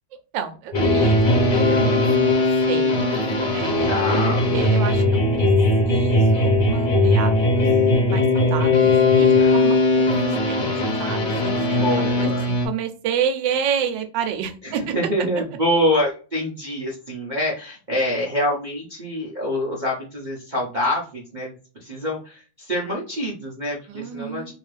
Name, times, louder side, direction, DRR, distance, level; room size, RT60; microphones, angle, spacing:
voice 1, 0.3-3.1 3.5-4.0 4.5-5.5 5.8-7.7 8.1-10.1 10.5-10.7 11.0-14.9 15.3-15.4 23.9-24.5, right 8 dB, 70° right, 6 dB, 1.2 m, -30 dB
sound 1, 0.7-12.7, left 2 dB, 45° left, 0.6 m, -19 dB
voice 2, 1.2-1.6 3.8-4.5 9.4-9.6 11.5-12.5 14.6-24.5, equal, 55° right, -4 dB, 0.5 m, -26 dB
3.0 x 2.8 x 3.2 m, 0.35 s
omnidirectional pair, 2.2 m